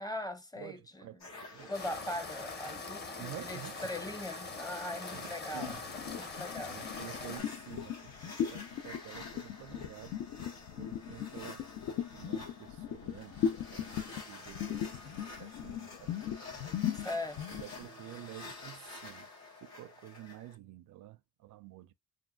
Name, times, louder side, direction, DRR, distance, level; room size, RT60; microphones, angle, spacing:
voice 1, 0.0-1.1 1.7-5.8 6.1-6.8 16.9-17.4, left 1 dB, 15° left, 0.6 m, -40 dB
voice 2, 0.5-1.7 3.2-4.1 5.1-5.9 6.7-10.2 10.8-11.7 12.1-16.2 17.5-19.3 19.6-21.9, right 14 dB, 70° right, 0.5 m, -50 dB
sound 1, 1.2-20.6, left 3 dB, 60° left, 2.0 m, -50 dB
sound 2, 1.7-7.4, left 4 dB, 35° left, 0.9 m, -43 dB
sound 3, 5.6-17.9, left 9 dB, 75° left, 0.6 m, -38 dB
3.5 x 2.3 x 2.3 m
cardioid pair, 90°, 30 cm